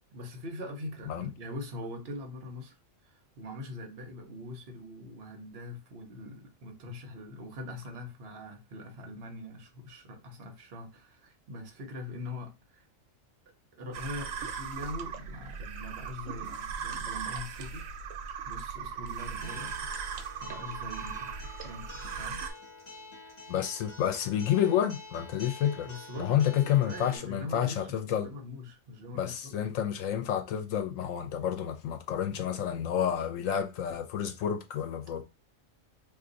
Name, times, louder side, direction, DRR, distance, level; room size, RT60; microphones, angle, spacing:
voice 1, 0.1-2.7 3.0-12.8 13.8-17.9 18.4-19.9 20.4-22.5 23.1-23.3 25.8-29.6, left 1 dB, 55° right, 1.0 m, -42 dB
sound 1, 13.9-22.5, right 6 dB, 85° right, 1.0 m, -38 dB
Acoustic guitar, 19.2-27.2, left 3 dB, 55° left, 1.3 m, -48 dB
voice 2, 23.5-25.9 26.2-28.3 29.1-35.2, left 10 dB, 90° left, 1.0 m, -29 dB
2.6 x 2.6 x 3.8 m
omnidirectional pair, 1.3 m